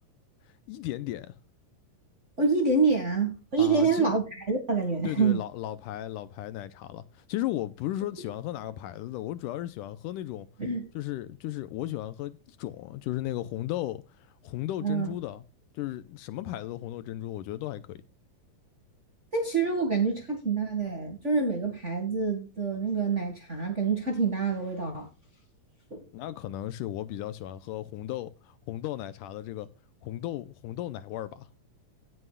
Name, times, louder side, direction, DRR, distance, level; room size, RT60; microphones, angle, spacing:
voice 1, 0.7-1.3 3.6-4.1 5.0-10.5 10.9-15.4 15.7-18.0 26.1-29.7 30.0-31.5, left 14 dB, 80° left, 2.1 m, -35 dB
voice 2, 2.4-5.4 10.6-10.9 14.8-15.1 19.3-25.1 25.9-26.0, right 4 dB, 30° right, 1.5 m, -26 dB
17.5 x 7.8 x 2.3 m
omnidirectional pair, 4.0 m